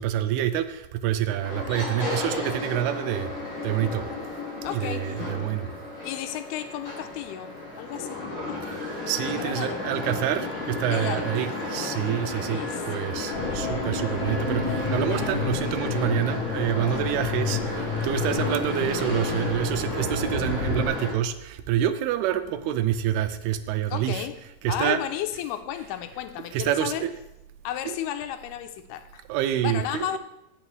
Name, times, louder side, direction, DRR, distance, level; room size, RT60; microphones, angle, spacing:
voice 1, 0.0-3.3 3.6-4.1 4.7-5.7 8.7-8.8 9.1-12.6 12.9-24.3 24.6-25.0 26.5-27.1 27.9-28.0 29.3-30.2, right 11 dB, 85° right, 10 dB, 2.6 m, -27 dB
sound 1, 1.4-21.1, left 3 dB, 40° left, 4.8 m, -33 dB
voice 2, 4.6-5.2 6.0-8.6 9.3-9.8 10.9-12.1 12.5-13.1 23.9-24.4 24.7-27.1 27.6-29.2 29.6-30.2, left 11 dB, 90° left, 8 dB, 2.6 m, -34 dB
sound 2, 13.3-20.9, left 3 dB, 55° left, 1.1 m, -30 dB
17.5 x 6.2 x 3.2 m, 0.87 s
omnidirectional pair, 4.5 m